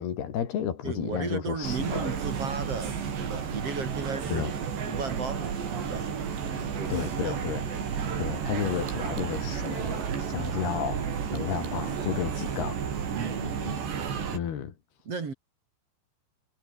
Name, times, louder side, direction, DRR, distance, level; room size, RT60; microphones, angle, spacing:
voice 1, 0.0-2.2 4.3-4.5 6.9-7.6 8.2-12.8 14.3-14.7, left 9 dB, 65° left, 4.7 m, -32 dB
voice 2, 0.8-4.5 4.9-6.1 6.4-7.8 10.6-10.8 11.3-11.6 13.1-13.9 15.1-15.3, right 4 dB, 35° right, 3.7 m, -36 dB
sound 1, 1.6-14.4, right 7 dB, 75° right, 6.4 m, -32 dB
omnidirectional pair, 5.0 m